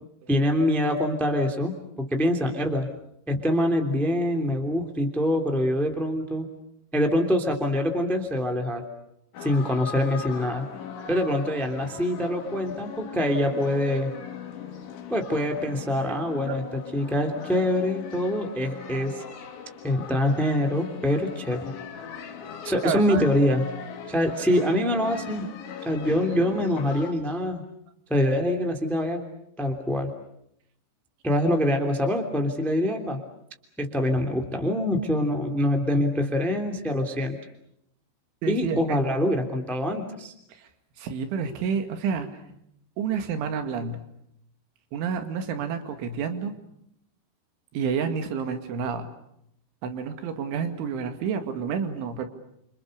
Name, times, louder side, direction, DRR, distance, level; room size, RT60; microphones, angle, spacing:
voice 1, 0.3-2.9 3.3-6.5 6.9-8.9 9.4-10.7 11.1-14.1 15.1-16.6 16.9-19.2 19.8-21.6 22.6-23.6 24.1-25.5 25.8-27.6 28.1-29.2 29.6-30.1 31.2-33.2 33.8-37.4 38.5-40.3, left 1 dB, ahead, 5 dB, 1.9 m, -25 dB
sound 1, 9.3-27.1, left 7 dB, 80° left, 4.9 m, -40 dB
voice 2, 22.8-23.2 38.4-39.0 40.5-40.7 41.0-42.3 43.0-44.0 44.9-46.5 47.7-49.1 49.8-52.3, right 6 dB, 90° right, 8 dB, 4.6 m, -29 dB
29.0 x 27.5 x 6.8 m, 0.75 s
omnidirectional pair, 5.3 m